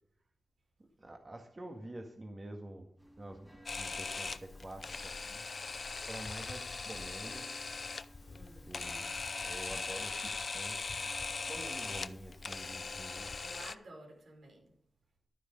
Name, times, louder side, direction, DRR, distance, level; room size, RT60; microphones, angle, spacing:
voice 1, 1.0-2.9 3.2-5.5 6.1-7.5 8.7-10.8 11.4-13.3, right 1 dB, 35° right, 2 dB, 1.9 m, -47 dB
sound 1, 3.0-13.2, equal, ahead, 3.5 m, -60 dB
Camera, 3.7-13.7, left 4 dB, 55° left, 0.6 m, -40 dB
voice 2, 8.2-8.7 11.5-11.9 13.4-14.7, right 2 dB, 85° right, 0 dB, 5.0 m, -53 dB
12.5 x 9.8 x 5.3 m, 0.64 s
wide cardioid pair, 75°, 0 cm